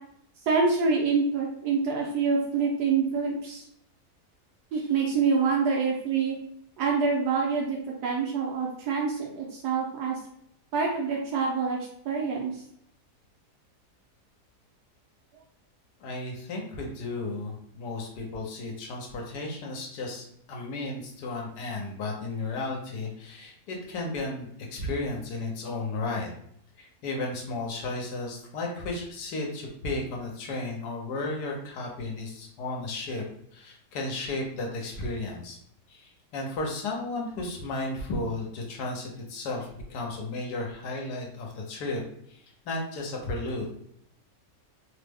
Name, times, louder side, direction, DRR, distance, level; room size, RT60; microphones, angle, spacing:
voice 1, 0.5-3.6 4.7-6.3 6.8-10.2 10.7-11.8 12.0-12.6, right 5 dB, 80° right, -1 dB, 1.2 m, -26 dB
voice 2, 16.0-26.3 26.8-33.2 33.5-35.6 35.9-42.0 42.3-43.7, left 2 dB, 80° left, 0 dB, 1.3 m, -34 dB
3.2 x 2.0 x 3.4 m, 0.70 s
omnidirectional pair, 1.7 m